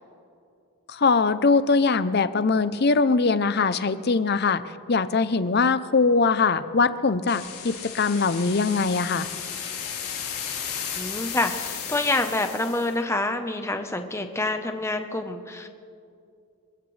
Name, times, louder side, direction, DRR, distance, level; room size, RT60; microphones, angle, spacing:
voice 1, 0.9-4.6 4.9-9.3, left 4 dB, 45° left, 13 dB, 0.6 m, -22 dB
sound 1, 7.3-12.9, left 8 dB, 85° left, 3.9 m, -34 dB
voice 2, 11.0-15.7, left 2 dB, 10° left, 6 dB, 0.8 m, -27 dB
27.5 x 15.0 x 3.3 m, 2.5 s
head